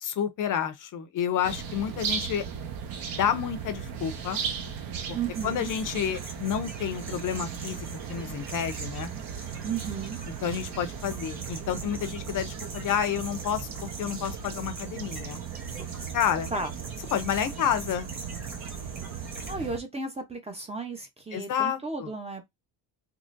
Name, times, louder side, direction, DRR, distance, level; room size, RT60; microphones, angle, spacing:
voice 1, 0.0-2.4 3.2-4.4 5.4-9.1 10.4-15.4 16.1-16.5 17.1-18.1 21.3-22.1, left 8 dB, 45° left, 0.6 m, -30 dB
sound 1, 1.4-19.8, right 7 dB, 55° right, 0.9 m, -37 dB
voice 2, 5.1-5.7 9.6-10.2 16.5-16.7 19.5-22.4, right 4 dB, 15° right, 0.7 m, -34 dB
sound 2, 5.3-19.5, right 2 dB, 40° right, 2.0 m, -44 dB
3.7 x 3.0 x 2.5 m
cardioid pair, 140°, 44 cm